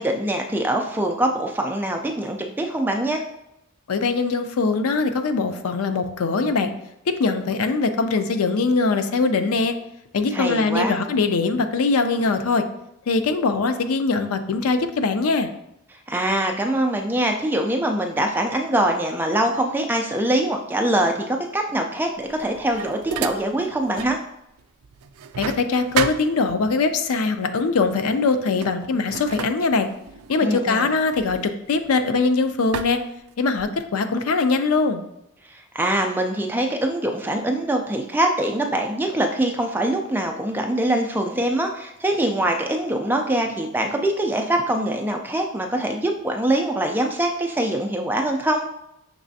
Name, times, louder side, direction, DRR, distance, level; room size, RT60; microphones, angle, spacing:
voice 1, 0.0-3.2 10.3-11.0 16.1-24.2 30.4-30.9 35.5-48.7, right 1 dB, 10° right, 3 dB, 0.3 m, -23 dB
voice 2, 3.9-6.7 7.1-9.8 10.1-12.6 13.1-15.5 25.4-29.9 30.3-33.0 33.4-35.0, left 4 dB, 85° left, 8 dB, 0.4 m, -22 dB
sound 1, 22.2-24.2 24.6-26.9 27.8-28.0 28.3-32.2 32.7-33.9, right 7 dB, 90° right, 0.3 m, -33 dB
6.0 x 3.2 x 2.7 m, 0.82 s
head